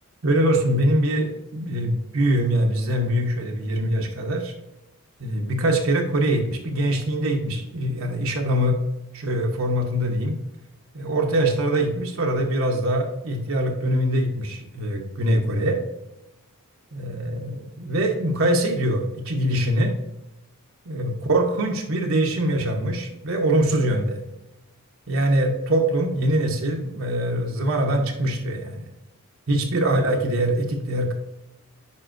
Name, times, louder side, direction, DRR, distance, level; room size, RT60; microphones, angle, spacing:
voice 1, 0.2-4.5 5.2-8.8 9.1-10.4 10.9-15.8 16.9-19.9 20.9-24.2 25.1-28.8 29.5-31.1, right 1 dB, 65° right, 1 dB, 0.9 m, -23 dB
9.7 x 5.3 x 2.6 m, 0.96 s
head